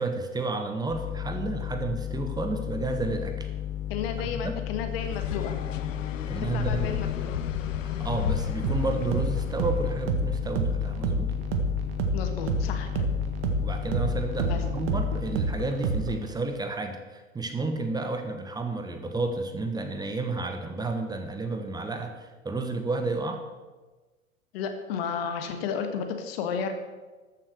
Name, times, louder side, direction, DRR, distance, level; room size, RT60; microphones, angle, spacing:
voice 1, 0.0-3.5 4.4-4.5 6.3-7.0 7.8-11.3 13.6-23.4, right 3 dB, 10° right, 6 dB, 1.1 m, -31 dB
sound 1, 0.9-15.4, left 11 dB, 10° left, 0.3 m, -34 dB
voice 2, 3.9-5.6 6.5-7.3 12.1-13.1 14.5-14.6 24.5-26.7, left 6 dB, 45° left, 6 dB, 1.6 m, -32 dB
sound 2, 5.0-9.9, left 9 dB, 70° left, 0.9 m, -33 dB
sound 3, 8.6-16.3, right 3 dB, 45° right, 1.7 m, -30 dB
13.5 x 7.5 x 6.4 m, 1.3 s
figure-of-eight pair, 95°, 40 cm